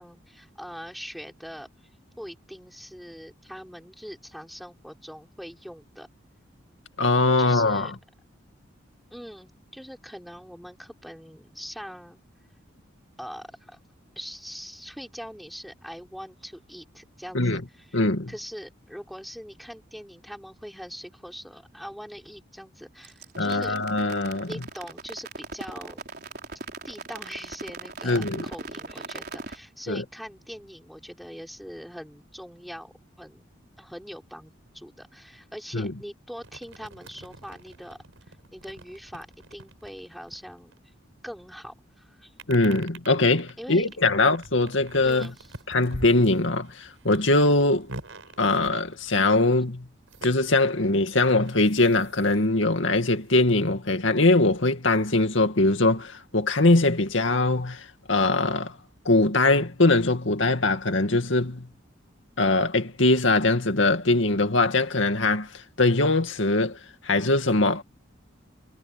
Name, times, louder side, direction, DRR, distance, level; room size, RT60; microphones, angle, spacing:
voice 1, 0.0-1.7 2.2-6.1 7.4-7.9 9.1-12.2 13.2-13.8 14.2-18.0 18.3-23.8 24.5-26.0 26.8-33.4 33.8-38.0 38.3-40.9 41.2-42.3 43.6-43.9 45.0-45.5, equal, ahead, 4.1 m, -42 dB
voice 2, 7.0-7.9 17.3-17.6 17.9-18.3 23.4-24.5 28.0-28.4 29.9-30.0 35.7-35.9 42.5-45.3 45.7-47.9 48.4-49.9 50.2-58.8 59.1-61.7 62.4-67.8, left 2 dB, 75° left, 2.3 m, -22 dB
sound 1, 23.0-29.6, right 3 dB, 50° right, 4.6 m, -38 dB
sound 2, 36.4-41.3 42.4-49.4 50.1-52.5 52.7-54.0, right 2 dB, 90° right, 5.7 m, -45 dB
head